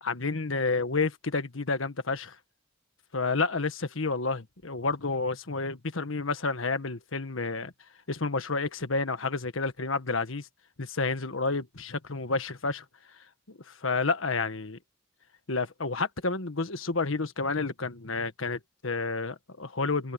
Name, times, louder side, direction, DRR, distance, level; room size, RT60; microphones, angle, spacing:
voice 1, 0.0-2.3 3.1-7.7 8.1-10.5 10.8-12.8 13.5-14.8 15.5-20.1, left 3 dB, 90° left, 1.5 m, -30 dB
open air
head